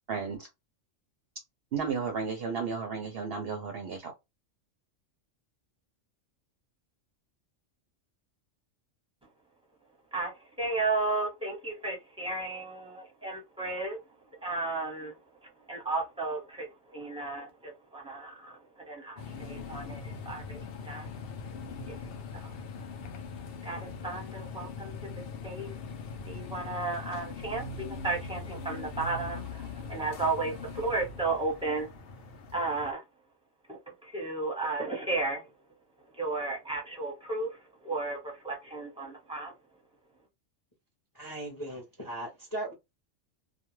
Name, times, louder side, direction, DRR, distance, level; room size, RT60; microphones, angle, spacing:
voice 1, 0.1-0.5 1.7-4.1, right 5 dB, 60° right, 0.7 m, -33 dB
voice 2, 10.6-14.0 14.4-15.1 15.7-18.6 18.9-20.6 20.8-21.1 21.9-22.0 22.3-22.5 23.6-24.9 25.4-25.7 26.2-31.9 32.5-33.0 33.7-35.5 36.2-39.5, right 3 dB, 5° right, 0.8 m, -34 dB
sound 1, 19.2-32.9, left 4 dB, 60° left, 0.6 m, -41 dB
voice 3, 41.1-42.7, right 1 dB, 20° left, 0.6 m, -38 dB
2.3 x 2.2 x 3.0 m
omnidirectional pair, 1.3 m